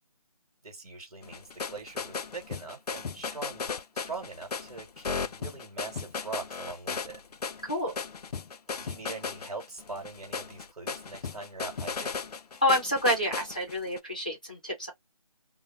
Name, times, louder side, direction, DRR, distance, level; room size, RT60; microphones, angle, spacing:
voice 1, 0.6-3.7 3.9-7.2 8.8-12.1, right 3 dB, 70° right, 1.2 m, -42 dB
sound 1, 1.2-14.0, left 5 dB, 85° left, 0.4 m, -36 dB
voice 2, 7.6-8.0 12.6-14.9, left 1 dB, 15° left, 0.5 m, -28 dB
2.3 x 2.0 x 3.1 m
figure-of-eight pair, 175°, 19 cm